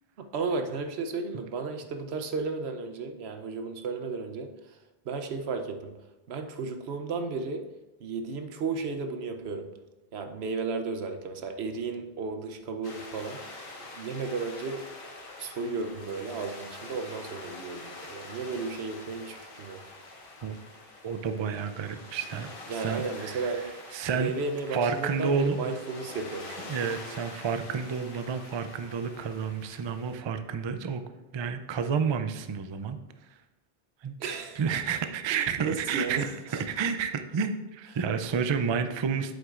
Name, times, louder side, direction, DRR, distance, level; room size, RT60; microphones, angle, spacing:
voice 1, 0.2-4.8 5.0-6.0 6.3-7.7 8.0-9.7 10.1-13.4 13.9-14.9 15.4-19.8 22.7-23.7 24.1-26.7 34.2-34.6 35.3-36.6, right 4 dB, 90° right, 6 dB, 1.0 m, -34 dB
sound 1, 12.8-30.2, left 2 dB, 60° left, 1.2 m, -45 dB
voice 2, 21.0-23.5 23.9-24.3 24.7-25.7 26.6-31.0 31.3-33.0 34.0-34.1 34.6-36.2 36.5-39.3, right 6 dB, 45° right, 8 dB, 0.3 m, -30 dB
8.0 x 7.9 x 2.5 m, 1.0 s
omnidirectional pair, 1.0 m